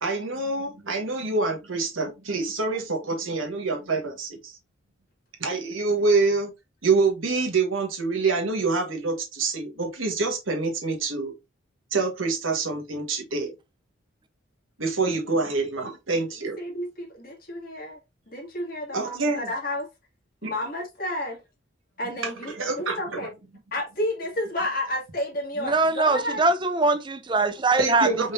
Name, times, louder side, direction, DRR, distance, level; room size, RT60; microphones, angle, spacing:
voice 1, 0.0-4.6 5.4-6.5 6.8-11.3 11.9-13.5 14.8-16.6 18.9-19.5 20.4-20.5 22.2-23.2 27.8-28.3, right 3 dB, 85° right, 1.6 m, -26 dB
voice 2, 16.6-18.0 18.3-19.9 20.4-21.4 22.0-23.3 23.7-26.4, left 1 dB, 45° left, 2.2 m, -31 dB
voice 3, 25.6-28.1, right 3 dB, 25° right, 0.5 m, -22 dB
5.0 x 4.0 x 2.6 m
head